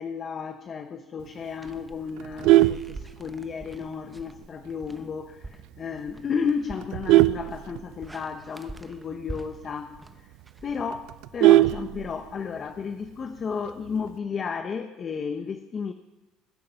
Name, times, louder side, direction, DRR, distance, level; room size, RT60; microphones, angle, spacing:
voice 1, 0.0-10.3 10.6-15.9, left 6 dB, 35° left, 8 dB, 0.9 m, -33 dB
sound 1, 1.6-11.4, right 2 dB, 10° right, 0.8 m, -46 dB
Vehicle horn car horn honking, 2.2-3.7 4.1-4.4 4.7-4.8 5.2-5.3 5.6-6.0 6.5-8.3 8.7-8.8 9.1-9.2 9.6-9.7 10.1-10.2 10.4-12.5 13.6-14.1, right 16 dB, 75° right, 0.4 m, -21 dB
21.5 x 9.4 x 5.7 m, 1.1 s
cardioid pair, 120°, 0 cm